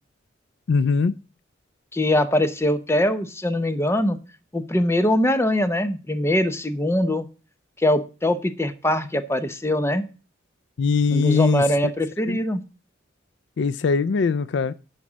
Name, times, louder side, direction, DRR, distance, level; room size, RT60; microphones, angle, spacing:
voice 1, 0.7-1.2 10.8-11.6 12.3-12.4 13.6-14.7, left 5 dB, 65° left, 0.4 m, -21 dB
voice 2, 1.9-4.2 4.5-7.3 7.8-10.1 11.1-12.6, left 1 dB, 15° left, 0.8 m, -22 dB
11.0 x 4.3 x 7.3 m
head